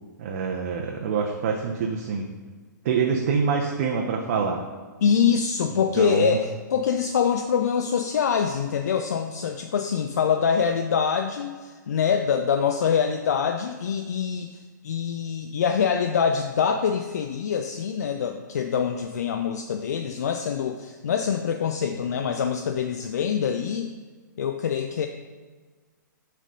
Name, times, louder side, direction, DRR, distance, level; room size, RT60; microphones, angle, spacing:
voice 1, 0.2-2.2 2.8-4.6 5.7-6.4, right 5 dB, 40° right, 1 dB, 0.6 m, -26 dB
voice 2, 5.0-14.5 14.8-23.9 24.4-25.1, left 7 dB, 55° left, 6 dB, 0.4 m, -24 dB
7.2 x 3.3 x 5.2 m, 1.4 s
figure-of-eight pair, 120°, 11 cm